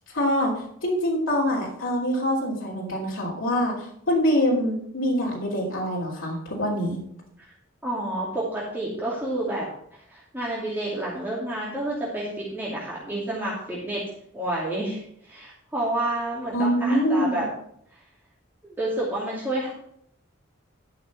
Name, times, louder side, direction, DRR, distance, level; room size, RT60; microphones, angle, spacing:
voice 1, 0.1-0.5 0.8-7.0 16.5-17.4, equal, 70° left, -3 dB, 3.0 m, -24 dB
voice 2, 7.8-9.6 10.1-14.0 14.3-17.4 18.6-19.7, right 1 dB, 10° right, -8 dB, 2.5 m, -29 dB
12.0 x 5.8 x 5.9 m, 0.68 s
head